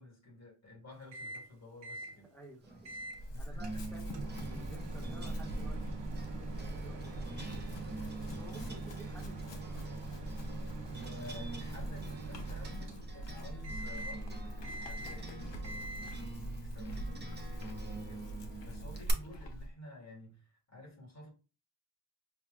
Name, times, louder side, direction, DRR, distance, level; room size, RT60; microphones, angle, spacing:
voice 1, 0.0-2.3 3.3-4.0 7.0-7.1 8.7-9.0 10.8-21.3, left 1 dB, 40° left, 1.7 m, -52 dB
Microwave oven, 1.1-1.5 1.8-2.1 2.8-3.2 3.6-13.3 13.6-14.3 14.6-15.3 15.6-16.3, right 3 dB, 75° right, 0.9 m, -45 dB
voice 2, 2.1-7.5 8.2-10.0, right 1 dB, 5° left, 1.1 m, -54 dB
sound 1, 2.6-19.1, right 3 dB, 25° right, 0.6 m, -47 dB
Chewing mastication / Livestock farm animals working animals, 3.1-19.7, equal, 80° left, 0.8 m, -43 dB
5.8 x 2.3 x 2.3 m
wide cardioid pair, 145°, 43 cm